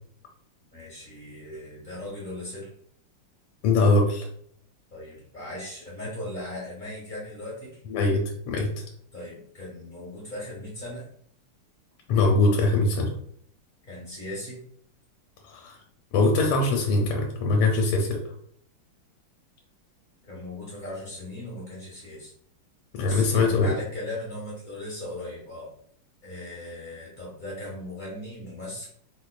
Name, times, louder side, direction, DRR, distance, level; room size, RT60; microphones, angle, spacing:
voice 1, 0.7-2.7 4.9-7.8 9.1-11.0 13.9-14.6 20.3-22.3 23.0-25.7 26.2-28.9, left 1 dB, 55° left, -5 dB, 0.5 m, -38 dB
voice 2, 3.6-4.3 7.9-8.7 12.1-13.1 15.4-15.7 16.1-18.2 22.9-23.7, left 3 dB, 85° left, 1 dB, 1.5 m, -22 dB
5.1 x 2.0 x 2.3 m, 0.64 s
omnidirectional pair, 2.4 m